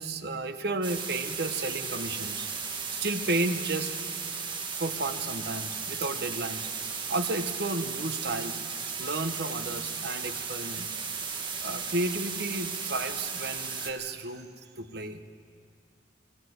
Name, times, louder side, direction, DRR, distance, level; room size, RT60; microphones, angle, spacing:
voice 1, 0.0-2.5 3.0-3.9 4.8-8.6 9.0-10.9 11.6-14.5 14.8-15.2, right 2 dB, 60° right, 7 dB, 1.1 m, -32 dB
sound 1, 0.8-13.9, right 5 dB, 25° right, 1.5 m, -35 dB
20.0 x 17.0 x 7.9 m, 2.3 s
head